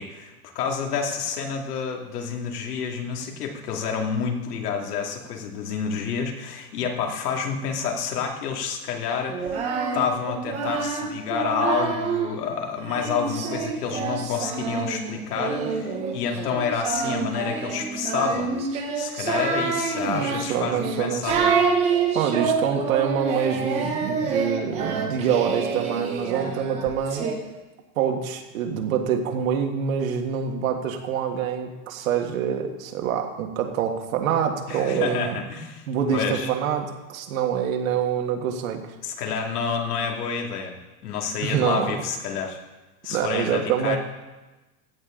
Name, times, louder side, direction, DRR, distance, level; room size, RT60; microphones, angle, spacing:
voice 1, 0.0-9.6 9.9-18.5 18.9-21.4 34.7-35.8 36.1-36.5 39.0-40.8 41.0-42.6 43.0-44.0, left 6 dB, 80° left, 2 dB, 2.4 m, -28 dB
Singing, 9.3-12.3 12.9-27.4, right 5 dB, 15° right, 0.7 m, -27 dB
voice 2, 20.0-21.5 22.1-27.3 27.9-35.4 35.9-38.8 41.4-41.9 43.1-44.0, right 8 dB, 60° right, 5 dB, 1.7 m, -26 dB
16.5 x 11.0 x 3.8 m, 1.1 s
supercardioid pair, 175°, 45 cm